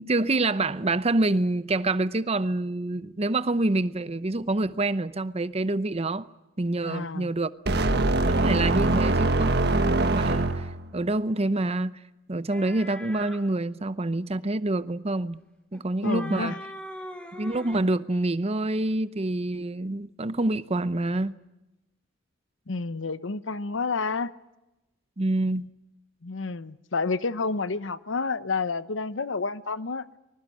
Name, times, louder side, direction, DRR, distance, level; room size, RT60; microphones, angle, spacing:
voice 1, 0.0-6.3 6.6-7.5 8.2-12.0 12.3-15.4 15.7-16.6 17.4-21.3 25.2-25.7, right 2 dB, 30° right, 0.8 m, -27 dB
voice 2, 6.8-7.3 16.0-16.6 22.7-24.3 26.2-30.1, left 4 dB, 75° left, 0.9 m, -29 dB
sound 1, 7.7-10.9, right 2 dB, 60° right, 1.6 m, -23 dB
sound 2, 12.5-13.4 15.7-17.9, equal, 5° left, 2.9 m, -41 dB
24.5 x 20.5 x 8.6 m
head